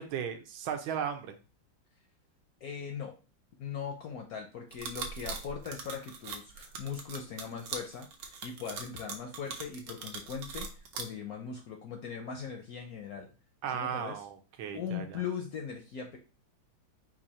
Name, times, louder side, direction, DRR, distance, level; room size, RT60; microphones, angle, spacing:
voice 1, 0.0-1.3 13.6-15.2, right 8 dB, 90° right, 7 dB, 1.5 m, -36 dB
voice 2, 2.6-3.2 3.6-13.3 13.7-14.2 14.7-16.2, left 7 dB, 70° left, 3 dB, 0.9 m, -40 dB
sound 1, 4.7-11.0, right 5 dB, 70° right, 1.4 m, -40 dB
4.6 x 2.6 x 4.1 m, 0.33 s
omnidirectional pair, 2.2 m